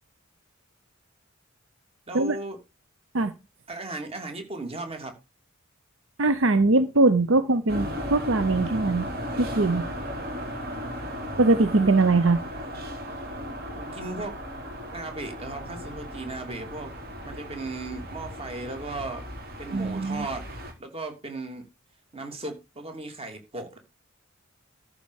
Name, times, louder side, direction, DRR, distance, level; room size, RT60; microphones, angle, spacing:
voice 1, 2.1-2.6 3.7-5.1 10.1-11.0 13.7-14.4 14.9-16.9 17.2-19.2 19.6-20.5 20.8-21.7 22.1-23.8, right 2 dB, 30° right, 2.9 m, -36 dB
voice 2, 6.2-9.9 11.4-12.4 19.7-20.3, right 2 dB, 70° right, 0.8 m, -22 dB
sound 1, 7.7-20.7, equal, 50° right, 3.9 m, -36 dB
14.0 x 4.8 x 6.5 m
head